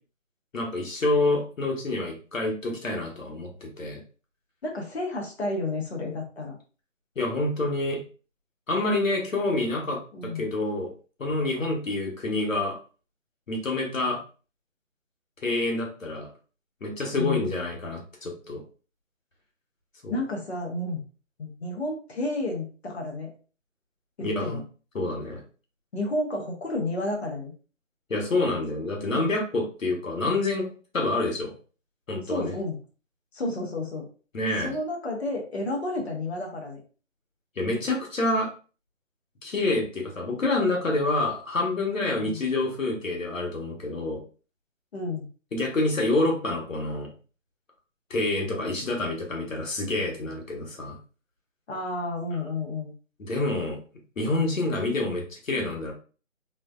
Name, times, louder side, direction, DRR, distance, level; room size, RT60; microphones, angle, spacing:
voice 1, 0.5-4.0 7.2-8.0 8.7-10.0 10.3-10.9 11.2-12.8 13.5-14.2 15.4-16.3 16.8-18.6 20.0-20.2 24.2-24.6 24.9-25.4 28.1-30.7 30.9-31.5 32.1-32.5 34.3-34.7 37.6-38.5 39.4-44.2 45.5-47.1 48.1-51.0 53.2-53.8 54.2-55.9, left 2 dB, 90° left, 1 dB, 1.2 m, -27 dB
voice 2, 4.6-6.6 10.1-10.5 17.1-17.5 20.1-21.0 21.4-23.3 24.2-24.6 25.9-27.5 32.2-32.8 33.3-34.1 34.6-36.8 42.1-42.4 44.9-45.3 51.7-52.9, left 2 dB, 55° left, 1 dB, 0.9 m, -31 dB
3.2 x 2.1 x 2.3 m, 0.37 s
figure-of-eight pair, 160°, 39 cm